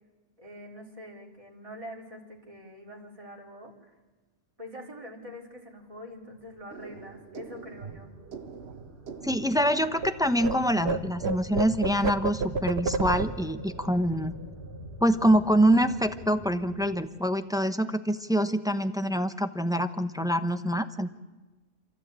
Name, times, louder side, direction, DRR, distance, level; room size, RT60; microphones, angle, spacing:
voice 1, 0.4-3.9 4.6-8.1, left 1 dB, 30° right, -2 dB, 3.7 m, -44 dB
sound 1, 6.2-17.0, equal, 50° left, 5.8 m, -46 dB
sound 2, 6.7-10.1 10.4-15.4 15.6-15.9 16.2-16.7, right 4 dB, 65° right, 1.2 m, -34 dB
voice 2, 9.2-14.3 15.0-21.1, equal, 5° right, 9 dB, 0.8 m, -25 dB
28.5 x 13.5 x 8.9 m, 1.2 s
omnidirectional pair, 1.2 m